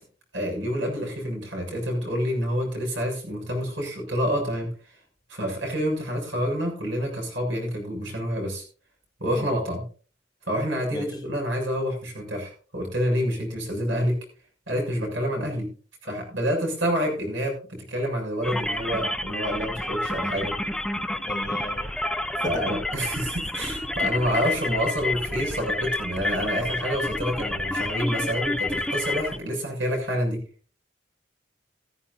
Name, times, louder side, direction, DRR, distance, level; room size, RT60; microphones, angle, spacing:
voice 1, 0.3-4.7 5.3-8.6 9.2-9.8 10.5-14.2 14.7-15.7 16.0-20.5 22.4-30.4, equal, 70° right, 7.2 m, -28 dB
sound 1, 18.4-29.4, left 2 dB, 5° left, 0.7 m, -29 dB
voice 2, 21.3-21.9 22.4-22.8 24.0-24.1, left 1 dB, 20° left, 1.4 m, -35 dB
15.0 x 14.5 x 2.7 m
head